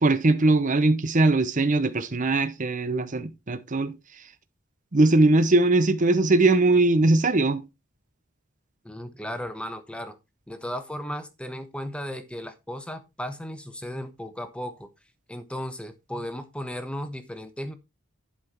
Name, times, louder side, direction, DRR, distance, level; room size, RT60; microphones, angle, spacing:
voice 1, 0.0-4.3 4.9-7.6, right 2 dB, 40° right, 0.8 m, -21 dB
voice 2, 8.8-10.2 10.5-14.9 15.3-17.7, equal, 5° left, 1.2 m, -35 dB
11.0 x 5.8 x 4.4 m
head